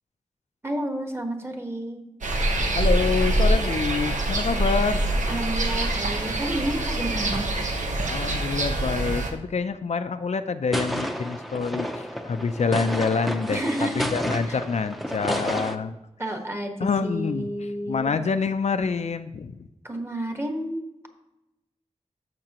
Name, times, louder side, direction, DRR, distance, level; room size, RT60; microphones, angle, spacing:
voice 1, 0.6-2.0 5.3-7.5 13.5-14.1 14.5-14.6 15.3-15.4 16.2-18.1 19.8-20.8, right 1 dB, 20° right, 3 dB, 1.4 m, -30 dB
sound 1, 2.2-9.3, right 1 dB, 85° right, 1.0 m, -25 dB
voice 2, 2.7-5.0 8.1-13.6 14.0-16.0 16.8-17.5 17.9-19.6, left 5 dB, 65° left, 9 dB, 0.5 m, -26 dB
sound 2, 10.7-15.8, equal, ahead, 0.7 m, -30 dB
14.0 x 5.9 x 3.0 m, 0.93 s
wide cardioid pair, 80°, 12 cm